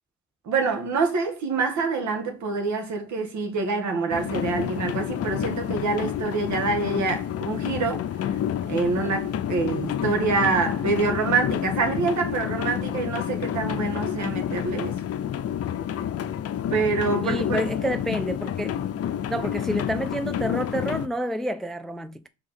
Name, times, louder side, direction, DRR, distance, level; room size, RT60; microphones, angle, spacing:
voice 1, 0.5-8.0 8.7-15.0 16.7-17.7, right 4 dB, 70° right, 1.8 m, -26 dB
sound 1, 4.1-21.1, left 10 dB, 50° left, 0.6 m, -29 dB
voice 2, 17.2-18.7 19.3-22.3, equal, ahead, 0.3 m, -29 dB
4.8 x 3.8 x 5.5 m
cardioid pair, 90°, 30 cm